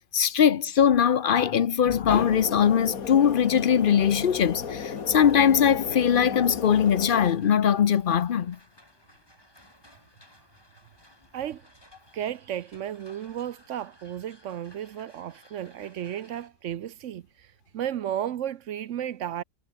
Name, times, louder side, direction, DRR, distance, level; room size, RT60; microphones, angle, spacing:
voice 1, 0.1-8.6, left 8 dB, 50° left, 0.7 m, -21 dB
sound 1, 2.1-7.3, left 6 dB, 80° left, 2.1 m, -34 dB
sound 2, 3.5-16.5, equal, 15° left, 7.2 m, -58 dB
voice 2, 12.1-19.4, right 10 dB, 65° right, 1.0 m, -34 dB
omnidirectional pair, 1.5 m